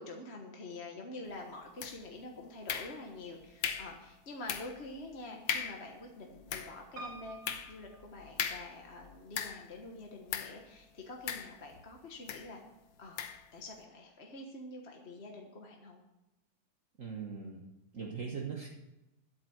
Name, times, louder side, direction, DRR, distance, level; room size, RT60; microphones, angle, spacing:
voice 1, 0.0-12.6 13.0-13.2 13.5-16.0, left 2 dB, 35° left, 1 dB, 1.5 m, -47 dB
sound 1, 1.8-2.2 2.7-3.2 3.6-4.0 4.5-4.8 5.1-5.2 5.5-5.9 6.3-9.8 10.3-10.6 11.3-11.9 12.3-12.5 13.2-13.5, left 8 dB, 85° left, 1.7 m, -38 dB
Piano, 7.0-8.9 9.6-10.3 10.6-10.7 10.9-11.0, right 2 dB, 80° right, 3.0 m, -50 dB
voice 2, 17.0-17.6 17.9-18.7, right 5 dB, 45° right, -1 dB, 1.7 m, -40 dB
12.5 x 8.2 x 7.9 m, 0.96 s
omnidirectional pair, 2.0 m